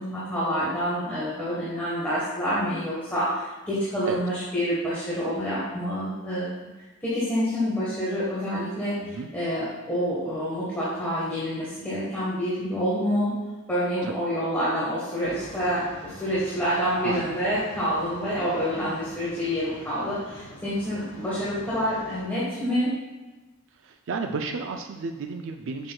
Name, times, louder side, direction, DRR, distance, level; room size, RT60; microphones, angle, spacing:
voice 1, 0.0-6.5 7.0-13.3 13.7-23.0, equal, 10° left, -9 dB, 1.3 m, -27 dB
sound 1, 15.2-22.2, left 1 dB, 25° left, 1.1 m, -45 dB
voice 2, 17.0-17.4 23.7-25.9, right 4 dB, 60° right, 5 dB, 0.4 m, -32 dB
7.5 x 6.2 x 2.3 m, 1.2 s
head